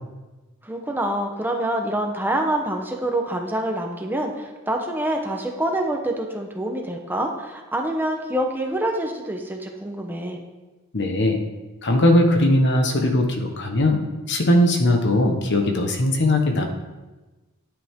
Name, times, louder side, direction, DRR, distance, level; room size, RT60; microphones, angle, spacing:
voice 1, 0.6-10.4, right 1 dB, 10° right, 2 dB, 1.0 m, -26 dB
voice 2, 10.9-11.4 11.8-14.0 14.3-16.7, left 1 dB, 55° left, 4 dB, 1.2 m, -19 dB
10.0 x 9.1 x 3.7 m, 1.2 s
head